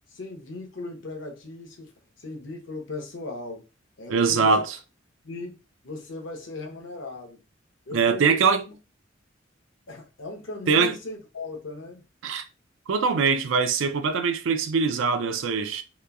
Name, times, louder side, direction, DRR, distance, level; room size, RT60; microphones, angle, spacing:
voice 1, 0.1-1.9 2.2-3.6 4.0-4.6 5.2-5.6 5.8-7.4 7.9-8.4 8.7-8.8 9.9-12.0, left 2 dB, 75° left, 0.8 m, -37 dB
voice 2, 4.1-4.8 7.9-8.6 10.7-10.9 12.2-12.4 12.9-15.8, right 5 dB, 90° right, 0.4 m, -22 dB
2.9 x 2.2 x 2.3 m
head